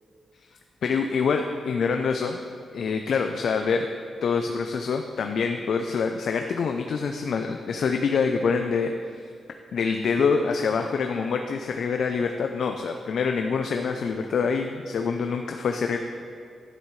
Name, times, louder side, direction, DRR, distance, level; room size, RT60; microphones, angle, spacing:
voice 1, 0.8-2.4 2.7-3.9 4.2-8.9 9.7-16.0, left 5 dB, 70° left, 5 dB, 0.5 m, -25 dB
12.5 x 10.0 x 3.2 m, 2.3 s
wide cardioid pair, 140°, 0 cm